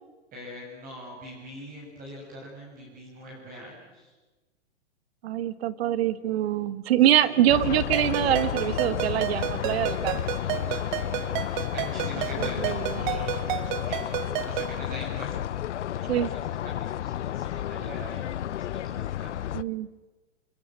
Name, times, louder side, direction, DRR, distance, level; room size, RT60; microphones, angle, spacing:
voice 1, 0.3-4.1 7.1-7.5 10.7-10.8 11.5-13.6 13.9-14.1 14.5-15.4 15.9-16.5 17.0-18.3 18.6-19.5, equal, 25° right, -2 dB, 7.4 m, -42 dB
voice 2, 5.2-10.3 12.4-13.0 16.1-16.3 19.5-19.9, right 12 dB, 60° right, 14 dB, 1.6 m, -24 dB
sound 1, 7.5-19.6, left 11 dB, 80° left, 0.8 m, -32 dB
Ringtone, 7.9-14.8, right 15 dB, 40° right, 1.2 m, -32 dB
27.5 x 22.5 x 7.6 m, 1.2 s
hypercardioid pair, 140°, 35 cm